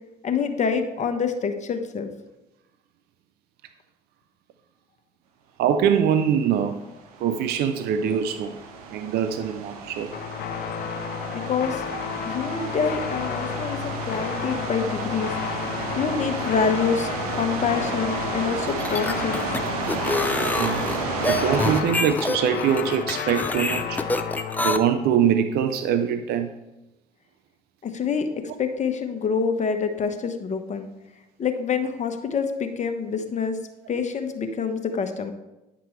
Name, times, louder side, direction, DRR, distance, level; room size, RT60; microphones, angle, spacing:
voice 1, 0.2-2.1 11.3-11.8 12.3-15.3 15.9-17.1 17.4-19.4 27.8-30.9 31.4-33.6 33.9-35.3, left 6 dB, 40° left, 7 dB, 1.0 m, -26 dB
voice 2, 5.6-6.8 7.2-8.6 8.9-10.2 20.5-20.9 21.2-24.0 24.6-26.5, right 8 dB, 60° right, 9 dB, 0.5 m, -23 dB
sound 1, 6.7-21.8, right 5 dB, 90° right, 0.8 m, -32 dB
sound 2, 10.1-24.7, left 8 dB, 60° left, 0.7 m, -32 dB
sound 3, 18.7-24.8, left 2 dB, 10° left, 0.6 m, -27 dB
9.5 x 5.9 x 3.1 m, 0.97 s
hypercardioid pair, 60°, 18 cm